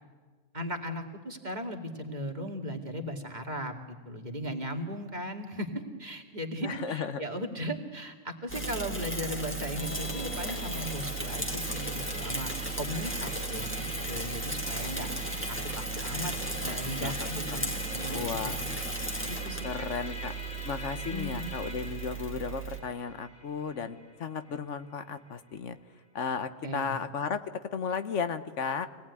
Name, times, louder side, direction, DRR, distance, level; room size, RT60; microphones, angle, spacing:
voice 1, 0.5-5.7 6.0-15.1 15.5-16.3 16.6-18.8 19.3-19.9 21.1-21.5 26.6-27.0, equal, 35° right, 2 dB, 2.4 m, -37 dB
voice 2, 6.6-7.2 17.0-17.6 18.1-18.6 19.6-20.3 20.6-25.8 26.1-27.5 27.7-28.9, left 6 dB, 70° left, 11 dB, 1.3 m, -34 dB
Bicycle / Mechanisms, 8.5-22.8, right 3 dB, 10° left, 2.7 m, -35 dB
Musical instrument, 9.8-25.3, left 2 dB, 45° left, 3.2 m, -44 dB
25.5 x 18.5 x 9.7 m, 1.5 s
omnidirectional pair, 1.3 m